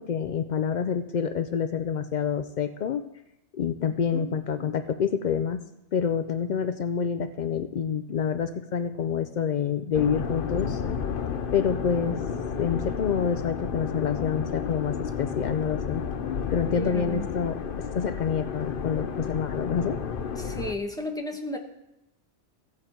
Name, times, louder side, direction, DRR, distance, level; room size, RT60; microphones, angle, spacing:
voice 1, 0.0-3.0 3.6-5.6 5.9-10.8 11.5-12.2 12.6-16.0 16.5-17.6 17.9-20.0, left 7 dB, 85° left, 10 dB, 0.4 m, -27 dB
sound 1, 9.9-20.7, left 6 dB, 50° left, 0.8 m, -32 dB
voice 2, 16.7-17.4 20.3-21.6, left 1 dB, 5° left, 3 dB, 1.0 m, -34 dB
15.5 x 7.7 x 4.4 m, 0.87 s
omnidirectional pair, 1.3 m